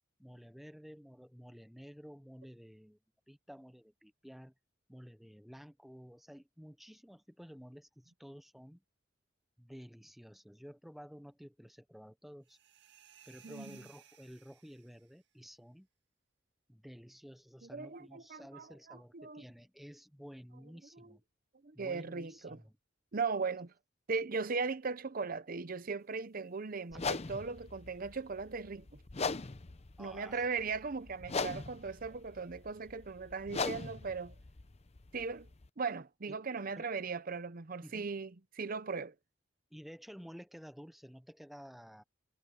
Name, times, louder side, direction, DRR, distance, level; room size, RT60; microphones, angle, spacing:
voice 1, 0.2-3.0 3.3-4.5 4.9-8.8 9.6-12.6 13.3-15.9 16.7-21.2 21.7-22.8 26.9-27.0 30.0-30.5 36.3-36.4 36.7-36.9 37.8-38.1 39.7-42.0, equal, ahead, 0.9 m, -52 dB
sound 1, 12.4-15.2, right 10 dB, 65° right, 2.0 m, -60 dB
voice 2, 13.4-13.8 17.6-19.4 21.0-21.1 21.6-22.6 23.1-23.7 24.1-28.9 30.0-34.3 35.1-35.5 35.8-39.1, right 4 dB, 50° right, 0.7 m, -38 dB
sound 2, 26.9-35.7, left 4 dB, 35° left, 0.8 m, -40 dB
head